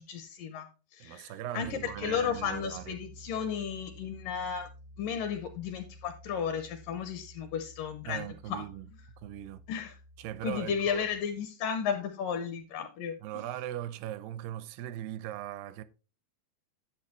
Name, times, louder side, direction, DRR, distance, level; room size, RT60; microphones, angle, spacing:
voice 1, 0.0-4.7 5.0-8.6 9.7-10.0 10.4-13.2, left 7 dB, 75° left, 2.1 m, -34 dB
voice 2, 1.0-3.0 8.1-8.9 9.2-9.6 10.2-11.0 13.2-15.8, right 12 dB, 85° right, 2.6 m, -39 dB
Piano, 1.6-11.2, equal, 60° right, 0.4 m, -52 dB
11.0 x 8.0 x 3.0 m
omnidirectional pair, 4.6 m